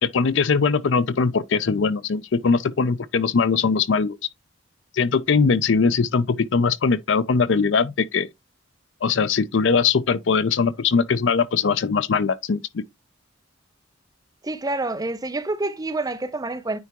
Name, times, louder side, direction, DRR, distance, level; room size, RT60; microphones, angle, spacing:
voice 1, 0.0-4.2 4.9-8.3 9.0-12.8, left 5 dB, 65° left, 0.5 m, -21 dB
voice 2, 14.4-16.8, right 2 dB, 20° right, 0.7 m, -27 dB
9.4 x 3.4 x 2.9 m
head